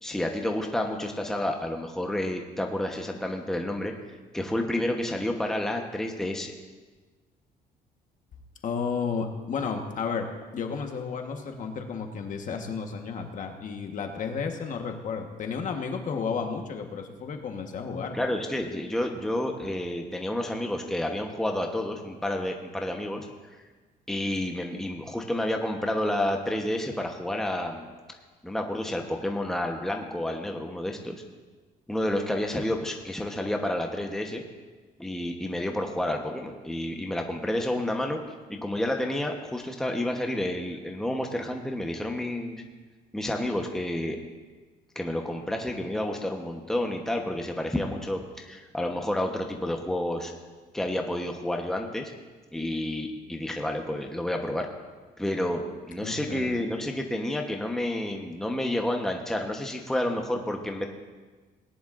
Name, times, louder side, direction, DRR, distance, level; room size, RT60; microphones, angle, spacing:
voice 1, 0.0-3.9 4.3-6.5 18.1-23.3 24.1-27.9 28.4-31.2 31.9-34.4 35.0-38.2 38.5-42.6 43.1-44.2 44.9-50.3 50.7-52.1 52.5-54.7 55.2-60.9, left 1 dB, 5° left, 2 dB, 1.0 m, -30 dB
voice 2, 8.6-10.3 10.5-18.3 56.0-56.7, left 5 dB, 50° left, 4 dB, 1.3 m, -32 dB
19.0 x 10.5 x 2.6 m, 1.3 s
cardioid pair, 110°, 17 cm